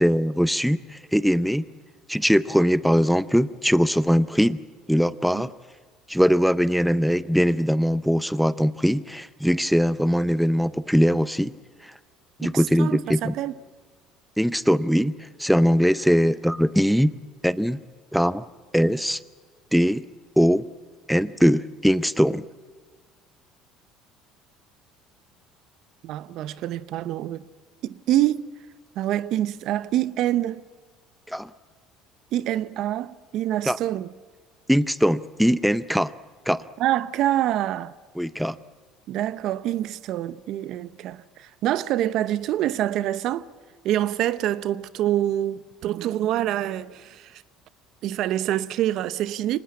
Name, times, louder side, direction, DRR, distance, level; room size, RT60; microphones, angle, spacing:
voice 1, 0.0-1.6 2.1-5.5 6.1-11.5 11.8-11.9 12.4-13.3 14.4-17.2 17.4-17.8 18.1-18.4 18.7-19.2 19.7-20.0 20.4-20.7 21.1-22.4 31.3-31.5 33.7-33.8 34.7-36.1 36.5-36.6 38.2-38.6, equal, ahead, 0.6 m, -21 dB
voice 2, 12.4-13.5 26.0-27.4 27.8-28.5 29.0-30.6 32.3-34.1 36.8-37.9 39.1-43.4 43.8-47.4 48.0-49.6, right 13 dB, 65° right, 0.7 m, -26 dB
24.5 x 19.5 x 8.5 m
supercardioid pair, 95°, 0 cm